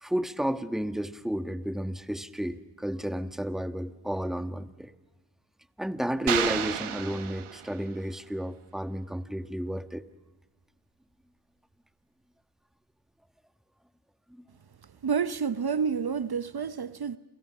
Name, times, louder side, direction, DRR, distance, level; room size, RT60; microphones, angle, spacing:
voice 1, 0.0-4.9 5.8-10.0 14.3-14.4, equal, ahead, 1.4 m, -32 dB
sound 1, 6.3-8.0, right 9 dB, 80° right, 1.3 m, -31 dB
voice 2, 15.0-17.2, right 6 dB, 50° right, 0.9 m, -29 dB
28.5 x 27.5 x 6.1 m
cardioid pair, 45°, 49 cm